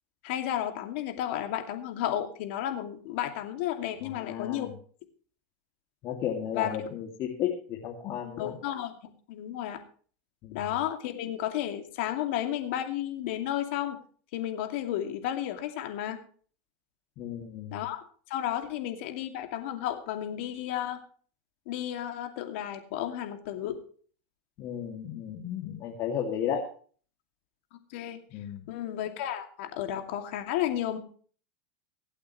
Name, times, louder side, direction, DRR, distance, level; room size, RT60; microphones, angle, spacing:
voice 1, 0.2-4.7 6.5-6.7 8.4-9.8 10.5-14.0 14.3-16.2 17.7-18.0 18.3-21.0 21.7-23.8 27.9-28.2 28.7-31.0, left 11 dB, 70° left, 5 dB, 2.5 m, -32 dB
voice 2, 4.0-4.7 6.0-8.5 10.4-10.7 17.2-17.8 24.6-26.6 28.3-28.7, left 9 dB, 45° left, 0 dB, 2.5 m, -34 dB
24.5 x 8.6 x 3.2 m, 0.43 s
supercardioid pair, 115°, 7 cm